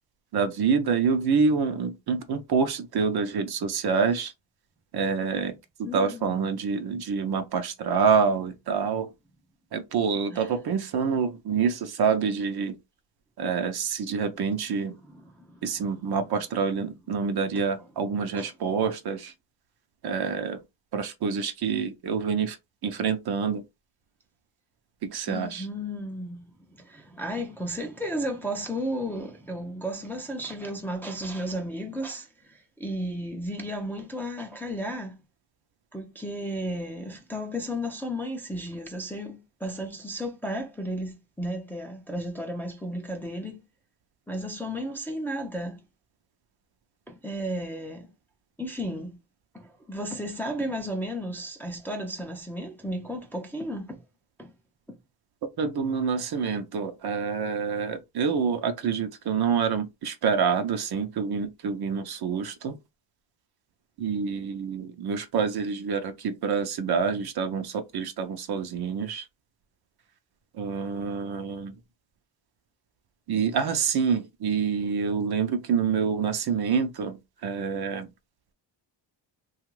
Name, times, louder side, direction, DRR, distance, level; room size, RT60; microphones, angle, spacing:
voice 1, 0.3-4.3 4.9-5.5 5.8-9.1 9.7-12.8 13.4-14.9 15.6-19.3 20.0-20.6 20.9-22.6 22.8-23.6 25.0-25.7 55.6-62.8 64.0-69.3 70.6-71.7 73.3-77.2 77.4-78.1, right 6 dB, 55° right, 0.6 m, -27 dB
voice 2, 5.8-6.6 10.3-10.5 15.0-16.2 17.5-17.9 18.3-18.5 25.3-35.2 35.9-43.7 44.3-45.8 47.1-48.1 48.6-49.2 49.5-54.0 54.4-54.5 54.9-55.0, equal, 5° left, 0.4 m, -34 dB
2.9 x 2.4 x 3.1 m
cardioid pair, 120°, 47 cm